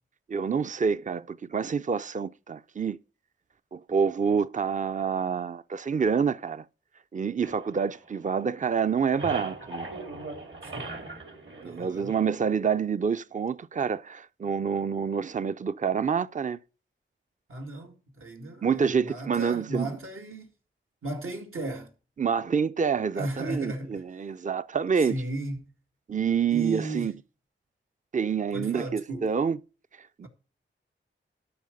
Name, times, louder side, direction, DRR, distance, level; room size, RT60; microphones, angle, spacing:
voice 1, 0.3-3.0 3.7-6.6 7.1-9.9 11.6-16.6 18.6-19.9 22.2-25.1 26.1-27.1 28.1-29.6 30.2-30.3, right 6 dB, 35° right, 0.5 m, -27 dB
sound 1, 7.4-8.5 8.8-12.5, right 2 dB, 65° right, 2.9 m, -39 dB
voice 2, 10.6-11.0 11.6-12.2 17.5-20.5 21.0-21.9 23.1-24.0 25.0-25.7 26.5-27.1 28.5-29.3, right 1 dB, 80° right, 2.5 m, -35 dB
12.5 x 5.7 x 5.3 m
cardioid pair, 55°, 21 cm